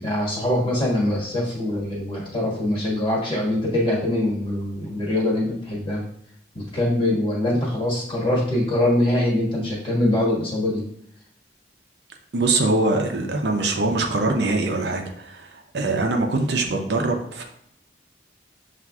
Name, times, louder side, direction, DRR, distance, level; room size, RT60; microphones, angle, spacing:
voice 1, 0.0-6.0 6.5-10.8, left 1 dB, 30° left, -5 dB, 1.4 m, -23 dB
voice 2, 12.3-17.4, right 2 dB, 65° right, 3 dB, 0.6 m, -23 dB
7.2 x 2.5 x 2.3 m, 0.71 s
head